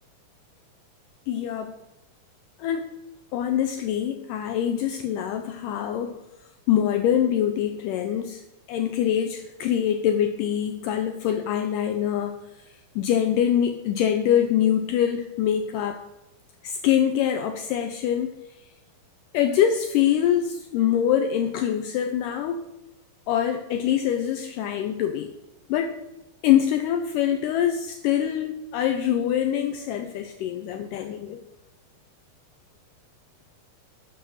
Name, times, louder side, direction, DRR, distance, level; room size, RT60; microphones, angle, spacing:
voice 1, 1.3-1.7 2.6-2.9 3.3-6.2 6.7-8.4 8.7-12.4 13.0-16.0 16.6-18.3 19.3-22.6 23.3-25.3 25.7-25.9 26.4-31.4, left 10 dB, 80° left, 6 dB, 1.9 m, -24 dB
7.9 x 6.7 x 6.2 m, 0.94 s
omnidirectional pair, 4.2 m